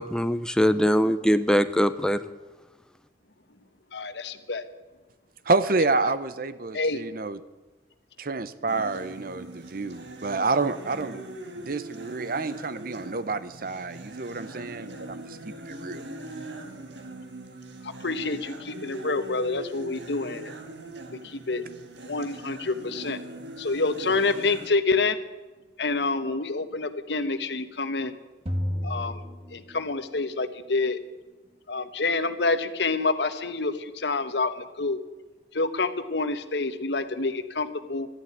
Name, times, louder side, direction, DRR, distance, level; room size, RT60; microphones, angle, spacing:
voice 1, 0.0-2.3, equal, 5° left, 11 dB, 0.6 m, -22 dB
voice 2, 3.9-4.6 6.7-7.0 18.0-20.5 21.1-21.6 22.0-23.2 23.6-25.2 25.8-28.1 28.8-29.2 29.5-31.0 31.7-35.0 35.5-38.1, left 3 dB, 70° left, 11 dB, 1.1 m, -27 dB
voice 3, 5.4-7.4 8.2-11.2 11.5-16.0, right 3 dB, 50° right, 14 dB, 0.8 m, -28 dB
sound 1, 8.7-24.7, right 2 dB, 85° right, 1.9 m, -41 dB
sound 2, 28.5-30.2, equal, 35° right, 1.6 m, -32 dB
13.0 x 11.0 x 9.7 m, 1.2 s
head